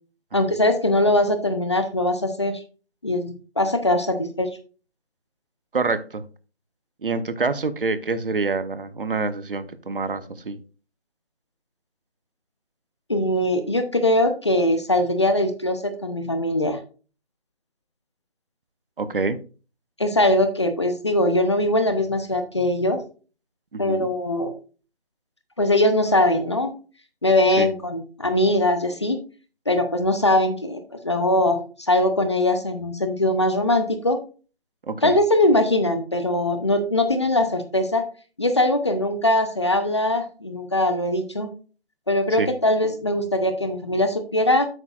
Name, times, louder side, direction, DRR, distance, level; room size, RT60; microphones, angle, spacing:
voice 1, 0.3-2.6 3.0-4.5 13.1-16.8 20.0-23.0 23.8-24.5 25.6-26.7 27.2-29.2 29.7-31.6 31.9-34.2 35.0-38.0 38.4-41.5 42.1-44.7, left 1 dB, 25° left, 8 dB, 0.7 m, -21 dB
voice 2, 5.7-6.2 7.0-10.6 19.0-19.4 23.7-24.1 27.6-27.7 34.8-35.2 42.3-42.5, right 4 dB, 55° right, 13 dB, 1.0 m, -26 dB
9.7 x 8.1 x 2.4 m, 0.36 s
figure-of-eight pair, 165°, 32 cm